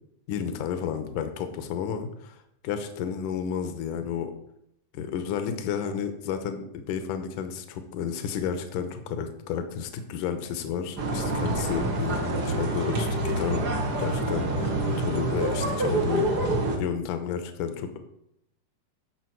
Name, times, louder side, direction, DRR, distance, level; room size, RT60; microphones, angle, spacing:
voice 1, 0.3-2.4 2.6-4.3 4.9-13.7 14.0-16.2 16.8-18.0, left 7 dB, 75° left, 8 dB, 2.4 m, -31 dB
sound 1, 11.0-16.8, right 2 dB, 50° right, 1.1 m, -27 dB
11.5 x 6.9 x 4.6 m, 0.77 s
omnidirectional pair, 4.0 m